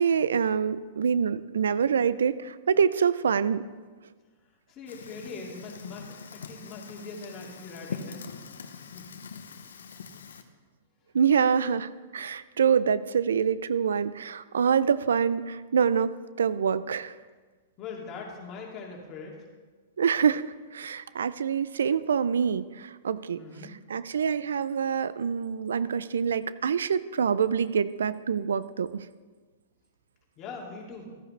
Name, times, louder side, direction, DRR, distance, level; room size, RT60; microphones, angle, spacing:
voice 1, 0.0-3.6 11.1-17.2 20.0-23.4 23.9-29.1, right 7 dB, 85° right, 16 dB, 0.4 m, -26 dB
voice 2, 4.7-8.3 8.9-9.1 17.8-19.4 23.4-23.8 30.4-31.1, left 4 dB, 30° left, -2 dB, 2.5 m, -41 dB
Fire, 4.9-10.4, left 6 dB, 85° left, 0.8 m, -43 dB
13.5 x 9.5 x 3.3 m, 1.4 s
hypercardioid pair, 130°, 0 cm